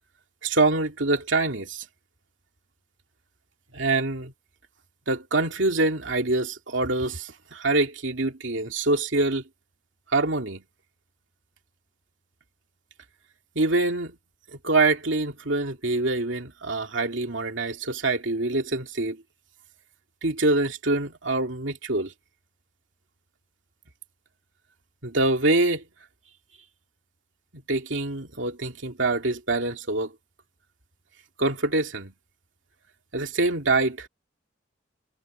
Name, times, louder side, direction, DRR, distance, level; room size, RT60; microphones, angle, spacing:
voice 1, 0.4-1.8 3.7-4.3 5.1-9.4 10.1-10.6 13.5-14.1 14.6-19.2 20.2-22.1 25.0-25.8 27.7-30.1 31.4-32.1 33.1-34.1, right 2 dB, 70° right, 2.8 m, -25 dB
head